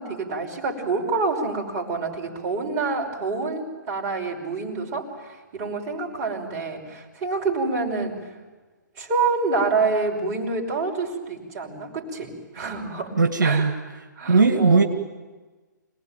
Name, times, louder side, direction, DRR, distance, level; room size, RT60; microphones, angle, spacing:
voice 1, 0.0-8.3 9.0-13.7 14.2-14.9, right 3 dB, 30° right, 0 dB, 5.7 m, -27 dB
voice 2, 13.2-13.7 14.3-14.8, right 4 dB, 75° right, 4 dB, 2.1 m, -18 dB
27.0 x 19.5 x 9.2 m, 1.3 s
figure-of-eight pair, 135°, 10 cm